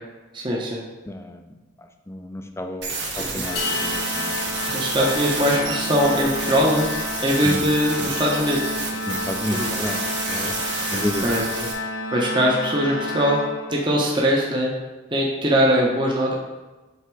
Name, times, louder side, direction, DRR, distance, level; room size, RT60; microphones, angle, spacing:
voice 1, 0.3-0.8 3.2-3.4 4.7-6.9 7.2-8.6 9.5-9.7 11.2-11.7 12.1-13.4 13.7-14.7 15.1-16.3, equal, 25° right, -3 dB, 0.9 m, -21 dB
voice 2, 1.1-1.5 2.1-2.9 3.2-4.4 7.4-7.6 8.0-8.1 9.1-10.0 10.3-10.5 10.9-11.2, left 1 dB, 15° left, 5 dB, 0.5 m, -30 dB
sound 1, 2.8-11.7, right 4 dB, 70° right, 1.3 m, -30 dB
Organ, 3.4-14.2, left 2 dB, 90° left, 0.5 m, -30 dB
sound 2, 3.6-5.9, left 4 dB, 55° left, 1.0 m, -34 dB
7.9 x 2.9 x 4.7 m, 1.2 s
head